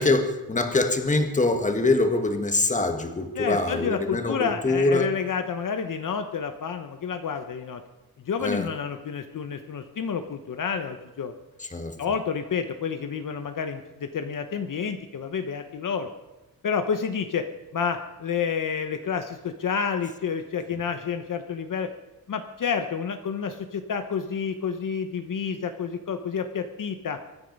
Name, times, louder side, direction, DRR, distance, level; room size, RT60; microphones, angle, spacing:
voice 1, 0.0-5.1 8.4-8.7 11.6-12.0, left 2 dB, 20° left, 6 dB, 1.5 m, -24 dB
voice 2, 3.4-7.8 8.2-11.3 12.0-16.1 16.6-17.5 17.7-21.9 22.3-27.2, left 6 dB, 60° left, 7 dB, 1.0 m, -29 dB
24.0 x 10.0 x 5.3 m, 1.1 s
wide cardioid pair, 125°, 36 cm